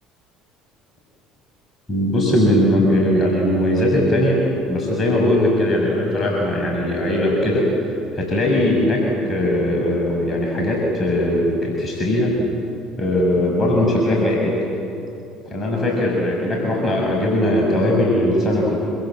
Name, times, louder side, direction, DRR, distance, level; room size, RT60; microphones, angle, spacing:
voice 1, 1.9-4.4 4.7-7.7 8.1-12.3 13.0-14.6 15.5-18.8, left 1 dB, 30° left, -2 dB, 7.1 m, -19 dB
27.5 x 27.0 x 7.7 m, 2.8 s
hypercardioid pair, 65°, 0 cm